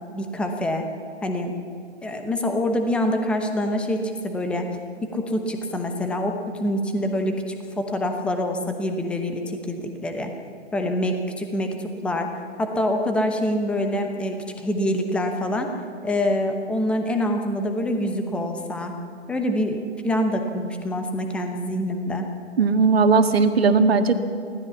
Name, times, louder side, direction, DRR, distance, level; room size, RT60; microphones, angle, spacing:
voice 1, 0.1-0.8 1.2-1.5 2.0-4.7 5.0-10.3 10.7-12.3 12.6-15.7 16.0-18.9 19.3-22.3, left 1 dB, 5° left, 5 dB, 0.9 m, -25 dB
voice 2, 22.6-24.2, right 4 dB, 55° right, 7 dB, 1.9 m, -18 dB
24.5 x 17.0 x 7.1 m, 2.6 s
figure-of-eight pair, 140°, 36 cm